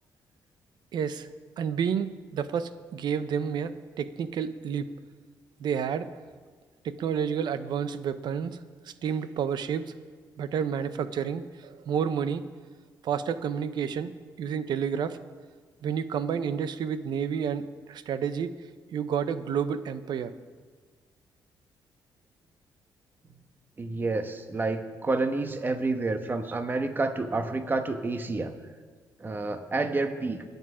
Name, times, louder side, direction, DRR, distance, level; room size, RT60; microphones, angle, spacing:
voice 1, 0.9-1.3 1.6-4.9 5.6-6.1 6.8-8.6 9.0-9.9 10.4-12.4 13.0-14.1 14.4-15.2 15.8-17.6 17.9-18.6 18.9-20.3, right 7 dB, 70° right, 12 dB, 0.8 m, -30 dB
voice 2, 23.8-28.5 29.2-30.4, right 3 dB, 25° right, 7 dB, 1.2 m, -29 dB
22.5 x 8.2 x 5.0 m, 1.5 s
cardioid pair, 95°, 8 cm